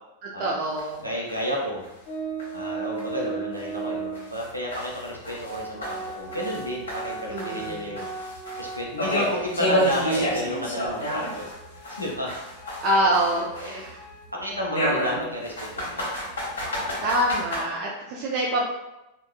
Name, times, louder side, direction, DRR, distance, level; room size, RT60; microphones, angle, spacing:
voice 1, 0.2-1.0 7.3-8.0 12.8-14.0 17.0-18.6, right 1 dB, 40° right, -3 dB, 0.4 m, -25 dB
sound 1, 0.8-0.9 1.3-1.4 1.8-1.9 2.4-2.5 3.0-3.1 3.5-3.6 4.1-6.6 6.9-11.5 11.8-13.9 14.7-17.6, equal, 65° left, 0.9 m, -29 dB
voice 2, 1.0-1.9 2.5-8.1 8.6-11.5 11.9-12.3 13.0-13.8 14.3-16.1, left 1 dB, 90° right, -3 dB, 0.7 m, -31 dB
Organ, 2.1-4.3 5.1-5.2 5.4-9.8 10.1-10.2 10.7-15.1, right 4 dB, 25° left, 0.8 m, -37 dB
3.6 x 2.3 x 2.3 m, 0.94 s
figure-of-eight pair, 90°, 0 cm